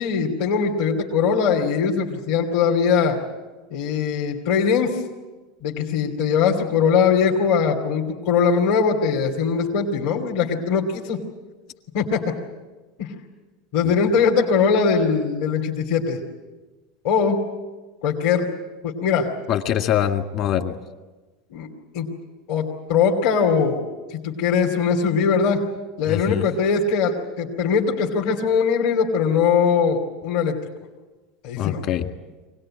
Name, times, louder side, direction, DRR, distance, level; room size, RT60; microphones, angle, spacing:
voice 1, 0.0-3.2 3.7-5.0 5.6-11.2 11.9-12.2 13.0-13.1 13.7-16.2 17.0-17.4 18.0-18.5 18.8-19.3 21.5-21.7 21.9-22.1 22.5-25.7 26.0-30.6 31.4-31.8, left 6 dB, 65° left, -2 dB, 2.8 m, -21 dB
voice 2, 19.5-20.8 26.1-26.4 31.6-32.1, left 10 dB, 45° left, 6 dB, 1.8 m, -23 dB
24.5 x 19.0 x 8.9 m, 1.2 s
supercardioid pair, 150°, 0 cm